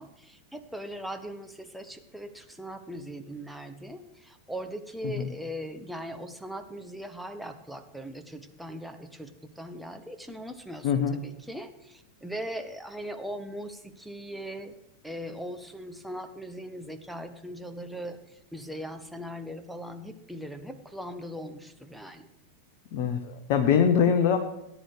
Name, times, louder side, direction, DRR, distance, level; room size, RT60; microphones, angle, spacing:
voice 1, 0.0-14.7 15.0-22.3, equal, ahead, 6 dB, 1.0 m, -40 dB
voice 2, 10.8-11.1 22.9-24.4, left 7 dB, 45° left, 7 dB, 1.0 m, -23 dB
18.5 x 9.9 x 3.4 m, 0.86 s
figure-of-eight pair, 90°, 0 cm